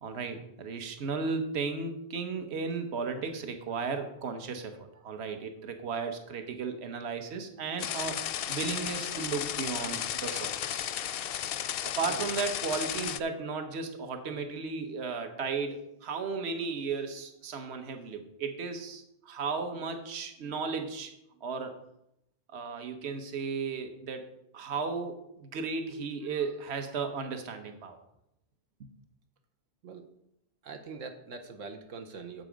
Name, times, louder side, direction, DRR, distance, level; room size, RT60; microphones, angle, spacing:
voice 1, 0.0-8.2 8.5-10.8 12.0-21.1 21.4-21.8 22.5-28.0, right 5 dB, 60° right, 7 dB, 1.3 m, -35 dB
sound 1, 7.8-13.2, left 10 dB, 65° left, 0.6 m, -34 dB
voice 2, 30.6-32.4, right 4 dB, 85° right, 5 dB, 1.3 m, -43 dB
8.1 x 7.7 x 5.1 m, 0.79 s
omnidirectional pair, 1.3 m